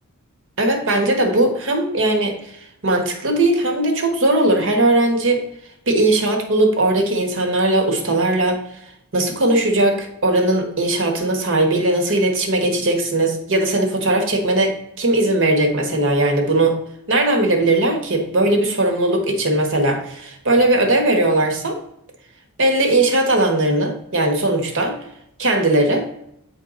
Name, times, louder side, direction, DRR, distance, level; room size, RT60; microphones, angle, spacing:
voice 1, 0.6-2.6 2.8-5.4 5.9-8.6 9.1-16.8 17.1-21.8 22.6-25.0 25.4-26.0, right 2 dB, 60° right, 4 dB, 1.4 m, -18 dB
8.8 x 4.6 x 3.8 m, 0.76 s
head